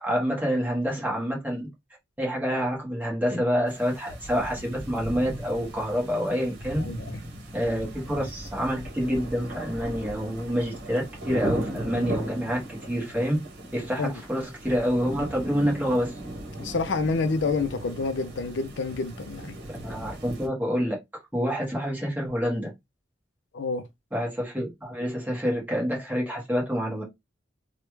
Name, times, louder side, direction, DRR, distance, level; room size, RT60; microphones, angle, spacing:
voice 1, 0.0-1.6 2.2-6.9 7.5-13.4 13.7-16.2 19.8-21.0 21.3-22.7 24.1-27.0, equal, 10° right, 1.2 m, -27 dB
sound 1, 3.7-20.5, right 1 dB, 60° right, 1.1 m, -37 dB
voice 2, 6.8-7.2 14.0-14.1 16.6-19.6 23.5-23.9, left 3 dB, 70° left, 0.5 m, -28 dB
3.2 x 2.3 x 3.0 m
head